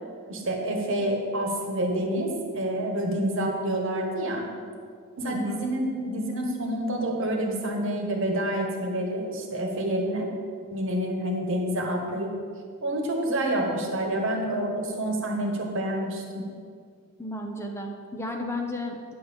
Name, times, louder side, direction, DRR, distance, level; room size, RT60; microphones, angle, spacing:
voice 1, 0.3-4.5 5.2-10.3 10.7-12.3 12.8-16.4, right 1 dB, 65° right, 1 dB, 1.3 m, -28 dB
voice 2, 5.2-5.7 17.2-19.1, left 1 dB, 10° left, 2 dB, 0.7 m, -33 dB
9.2 x 4.0 x 7.0 m, 2.1 s
head